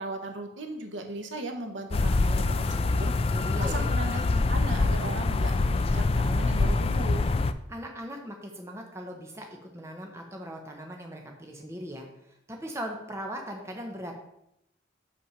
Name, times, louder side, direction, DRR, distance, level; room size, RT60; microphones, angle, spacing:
voice 1, 0.0-2.4 2.7-3.1 3.6-7.3, right 2 dB, 75° right, 4 dB, 1.2 m, -37 dB
sound 1, 1.9-7.5, left 3 dB, 30° left, 0.3 m, -25 dB
voice 2, 3.3-3.9 7.7-12.1 12.5-14.1, equal, 15° right, 1 dB, 1.0 m, -39 dB
6.3 x 5.8 x 5.6 m, 0.81 s
head